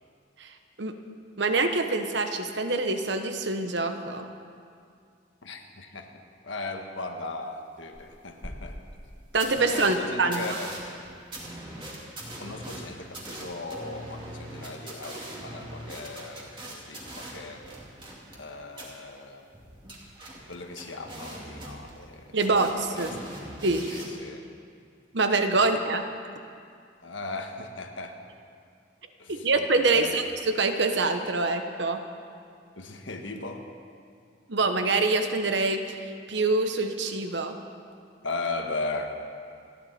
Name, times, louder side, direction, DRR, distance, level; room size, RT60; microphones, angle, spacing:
voice 1, 1.4-4.3 9.3-10.6 22.3-23.2 23.6-23.9 25.1-26.0 29.3-30.2 30.6-32.0 34.5-35.8 36.3-37.5, right 3 dB, 70° right, 7 dB, 1.1 m, -25 dB
voice 2, 5.4-6.1 6.4-8.8 9.6-10.8 12.4-17.6 18.3-19.5 20.5-22.4 22.9-23.2 23.9-24.4 27.0-28.2 29.2-30.1 32.8-33.7 38.2-39.1, left 3 dB, 90° left, 4 dB, 1.5 m, -37 dB
sound 1, 7.9-8.0 8.4-8.5 9.0-9.1 9.4-9.9 10.3-18.4 18.7-18.9 19.5-22.1 22.4-24.1, right 1 dB, 25° right, 2.5 m, -41 dB
28.5 x 10.5 x 4.4 m, 2.3 s
head